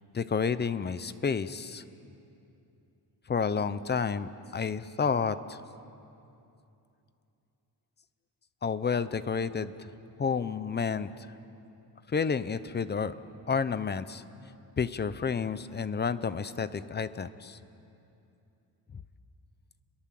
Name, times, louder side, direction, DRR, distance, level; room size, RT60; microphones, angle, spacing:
voice 1, 0.1-1.8 3.3-5.6 8.6-9.9 10.2-11.3 12.1-13.1 13.5-14.2 14.8-17.6, left 6 dB, 25° left, 14 dB, 0.7 m, -30 dB
29.5 x 22.0 x 7.6 m, 2.7 s
wide cardioid pair, 175°, 41 cm